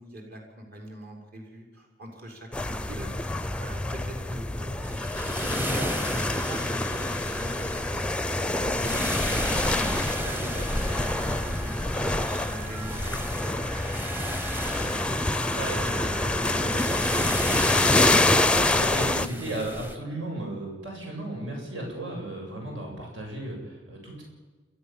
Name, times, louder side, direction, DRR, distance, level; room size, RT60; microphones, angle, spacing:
voice 1, 0.0-3.1 3.6-5.1 5.4-8.2 8.6-10.0 10.2-14.4 14.7-15.3 17.1-17.8, right 1 dB, 55° right, 1 dB, 6.0 m, -42 dB
sound 1, 2.5-19.3, left 2 dB, 5° left, 0.5 m, -26 dB
sound 2, 4.8-20.0, equal, 10° right, 1.0 m, -36 dB
sound 3, 9.7-18.6, right 4 dB, 30° right, 3.2 m, -44 dB
voice 2, 15.5-17.1 18.1-24.2, right 1 dB, 80° right, -1 dB, 7.8 m, -35 dB
30.0 x 13.5 x 7.4 m, 1.3 s
head